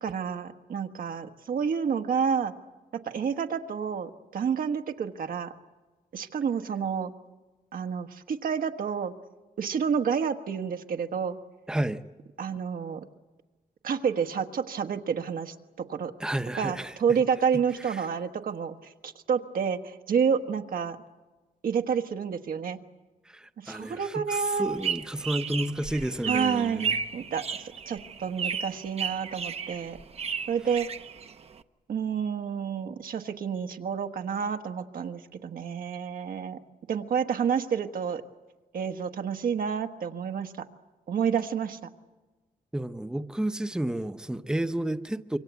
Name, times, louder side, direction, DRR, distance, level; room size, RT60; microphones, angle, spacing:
voice 1, 0.0-2.5 2.9-5.5 6.1-7.1 7.7-9.1 9.6-11.4 12.4-13.0 13.8-16.1 16.6-21.0 21.6-22.8 23.6-24.8 26.3-30.0 30.5-30.9 31.9-36.6 36.9-38.2 38.7-40.7 41.1-41.8, right 7 dB, 75° right, 1.3 m, -29 dB
voice 2, 11.7-12.0 16.2-17.2 17.9-18.1 23.3-27.0 42.7-45.4, right 1 dB, 5° right, 0.7 m, -31 dB
sound 1, 24.6-31.6, right 6 dB, 45° right, 0.8 m, -34 dB
26.5 x 24.0 x 8.2 m
wide cardioid pair, 130°, 15 cm